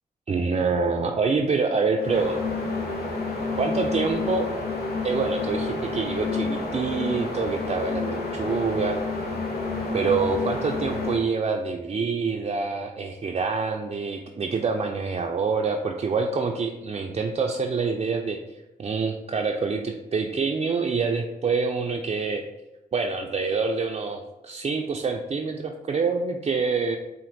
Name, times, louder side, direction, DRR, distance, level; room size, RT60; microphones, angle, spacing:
voice 1, 0.3-2.4 3.6-4.5 5.0-9.0 9.9-18.4 18.8-22.4 22.9-27.0, right 4 dB, 40° right, 2 dB, 0.4 m, -26 dB
sound 1, 2.0-11.3, left 3 dB, 85° left, 0.7 m, -29 dB
4.3 x 2.5 x 3.9 m, 0.99 s
cardioid pair, 50°, 16 cm